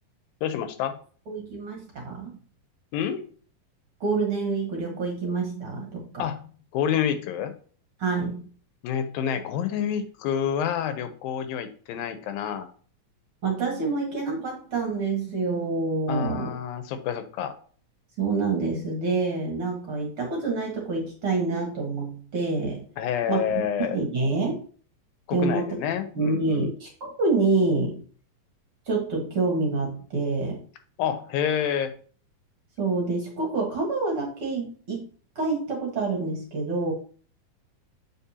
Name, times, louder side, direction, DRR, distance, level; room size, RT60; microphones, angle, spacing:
voice 1, 0.4-1.0 2.9-3.2 6.2-6.4 6.7-7.5 8.8-12.7 16.1-17.5 23.0-24.0 25.3-26.7 31.0-31.9, left 8 dB, 85° left, 10 dB, 2.6 m, -28 dB
voice 2, 1.3-2.4 4.0-6.1 8.0-8.4 13.4-16.5 18.2-22.9 23.3-24.6 25.3-25.7 26.2-28.0 28.9-30.6 32.8-35.1 35.4-36.9, right 3 dB, 50° right, 0 dB, 1.9 m, -27 dB
7.4 x 6.4 x 2.8 m, 0.43 s
omnidirectional pair, 4.1 m